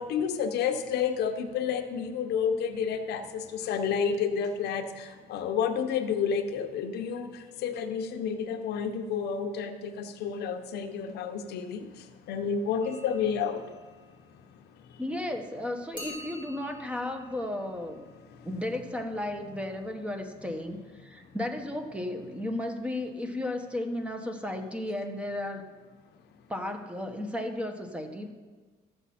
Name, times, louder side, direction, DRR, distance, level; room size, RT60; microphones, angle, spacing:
voice 1, 0.0-7.3 7.6-13.6, left 7 dB, 75° left, 6 dB, 0.9 m, -30 dB
sound 1, 12.8-15.3 16.0-19.9, left 1 dB, 30° right, 2.9 m, -50 dB
voice 2, 15.0-18.0 18.4-25.7 26.5-28.3, left 1 dB, 5° right, 5 dB, 1.0 m, -34 dB
14.0 x 7.3 x 4.3 m, 1.4 s
cardioid pair, 110°, 17 cm